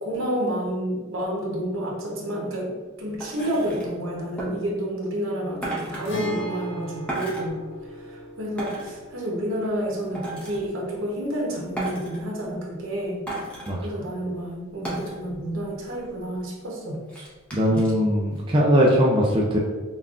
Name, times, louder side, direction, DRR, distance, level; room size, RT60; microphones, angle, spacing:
voice 1, 0.0-7.6 7.9-13.2 13.8-17.0 17.7-17.9, equal, 70° right, -3 dB, 0.9 m, -29 dB
sound 1, 3.2-3.9 4.4-4.5 5.6-6.0 7.1-7.5 8.6-8.9 10.1-10.6 11.8-12.2 13.3-13.7 14.8-15.2 15.6-15.7 15.9-16.4 17.1-17.9 18.4-18.5, right 1 dB, 5° left, 0.7 m, -33 dB
Guitar, 6.0-13.7 13.9-14.0 16.0-16.2, right 2 dB, 65° left, 1.2 m, -40 dB
voice 2, 17.5-19.6, equal, 25° right, -3 dB, 0.3 m, -20 dB
5.4 x 2.4 x 2.4 m, 1.4 s
head